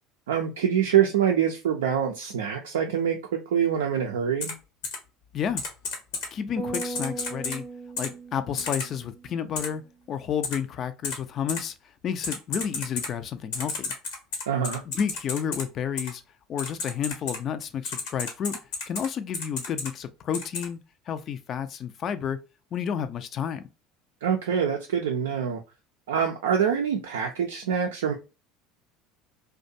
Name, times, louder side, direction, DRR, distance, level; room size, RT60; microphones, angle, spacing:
voice 1, 0.3-4.5 14.5-14.8 24.2-25.6 26.1-28.1, right 8 dB, 80° right, 0.4 m, -25 dB
Typing, 4.4-4.5 4.8-5.0 5.6-6.3 6.7-7.6 8.0-8.1 8.6-8.9 9.5-9.7 10.4-10.5 11.0-11.2 11.5-11.6 12.2-13.1 13.5-15.6 16.0-16.1 16.6-17.4 17.8-19.1 19.3-19.9 20.3-20.6, left 4 dB, 70° left, 0.8 m, -31 dB
voice 2, 6.3-7.6 8.0-9.8 10.1-11.7 12.0-13.9 14.9-16.2 16.5-18.6 18.9-20.8 21.1-22.4 22.7-23.6, left 8 dB, 45° left, 0.4 m, -31 dB
sound 1, 6.6-10.0, right 3 dB, 20° right, 0.7 m, -38 dB
2.4 x 2.2 x 2.6 m
hypercardioid pair, 70°, 0 cm